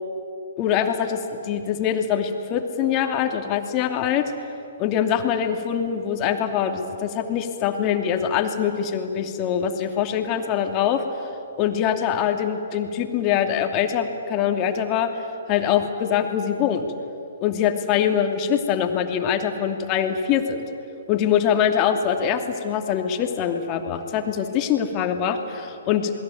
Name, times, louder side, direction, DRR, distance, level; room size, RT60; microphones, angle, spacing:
voice 1, 0.6-4.3 4.8-11.0 11.6-16.9 17.4-20.7 21.1-26.1, left 8 dB, 30° left, 5 dB, 2.7 m, -23 dB
27.5 x 21.0 x 9.4 m, 2.6 s
figure-of-eight pair, 125°, 0 cm